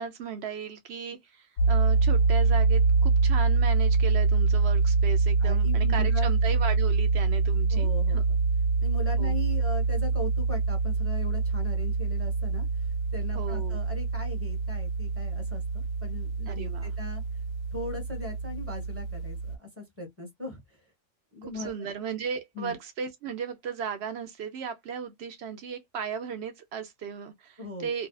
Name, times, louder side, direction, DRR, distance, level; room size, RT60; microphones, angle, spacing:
voice 1, 0.0-8.2 9.2-9.3 13.3-13.8 16.5-16.9 21.5-28.1, right 6 dB, 65° right, 0.7 m, -36 dB
sound 1, 1.6-19.6, right 4 dB, 90° left, 1.0 m, -25 dB
voice 2, 5.4-6.3 7.7-8.4 8.8-12.9 13.1-17.2 17.7-20.8 21.3-21.7 22.5-22.7 27.6-27.9, left 2 dB, 10° right, 0.9 m, -39 dB
2.7 x 2.2 x 2.2 m
omnidirectional pair, 1.4 m